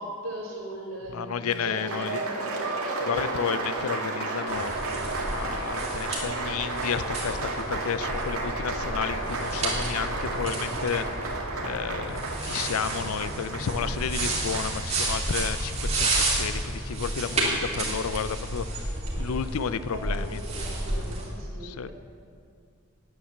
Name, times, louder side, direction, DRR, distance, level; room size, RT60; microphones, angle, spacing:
voice 1, 0.0-2.5 19.9-20.2 20.6-21.9, right 1 dB, 70° right, -3 dB, 3.3 m, -38 dB
voice 2, 1.1-2.2 3.0-11.1 11.6-18.8 19.2-20.4 21.6-21.9, left 7 dB, 80° left, 14 dB, 0.4 m, -32 dB
Applause, 1.5-14.8, right 2 dB, 85° right, 1.9 m, -32 dB
sound 1, 4.5-21.2, right 2 dB, 30° right, 2.7 m, -31 dB
9.7 x 9.5 x 7.2 m, 2.2 s
head